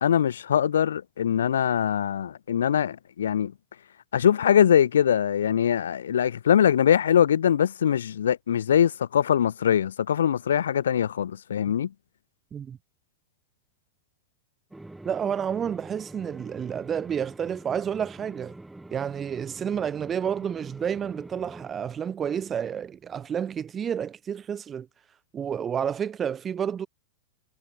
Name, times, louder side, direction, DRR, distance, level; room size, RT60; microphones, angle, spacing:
voice 1, 0.0-3.5 4.1-11.9, left 9 dB, 65° left, 0.4 m, -22 dB
sound 1, 14.7-21.7, right 2 dB, 5° right, 2.0 m, -45 dB
voice 2, 15.0-18.5 18.9-24.9 25.3-26.9, right 8 dB, 25° right, 3.2 m, -30 dB
figure-of-eight pair, 90°, 0 cm